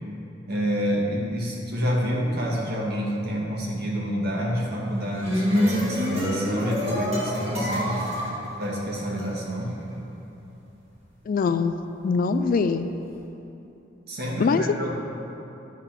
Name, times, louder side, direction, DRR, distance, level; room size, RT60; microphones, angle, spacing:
voice 1, 0.5-8.1 8.6-9.8 14.1-14.9, equal, 55° right, -3 dB, 1.5 m, -28 dB
sound 1, 4.9-9.3, equal, 35° right, 1.7 m, -27 dB
voice 2, 11.3-11.8 12.0-12.9 14.4-14.9, left 4 dB, 45° left, 9 dB, 0.3 m, -23 dB
11.0 x 3.6 x 5.8 m, 2.9 s
head